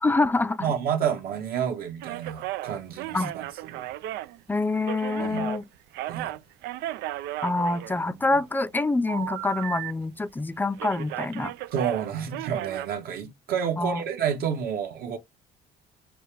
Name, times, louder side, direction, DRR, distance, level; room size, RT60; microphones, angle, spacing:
voice 1, 0.0-0.7 3.1-3.3 4.5-5.7 7.4-11.5 13.8-14.0, left 2 dB, 10° left, 0.4 m, -26 dB
voice 2, 0.6-3.9 5.2-5.5 6.1-6.3 11.7-15.2, right 8 dB, 65° right, 1.4 m, -30 dB
sound 1, 2.0-5.6 5.9-8.4 9.1-10.4 10.7-12.9, right 15 dB, 80° right, 0.4 m, -35 dB
6.8 x 2.3 x 3.3 m
cardioid pair, 110°, 17 cm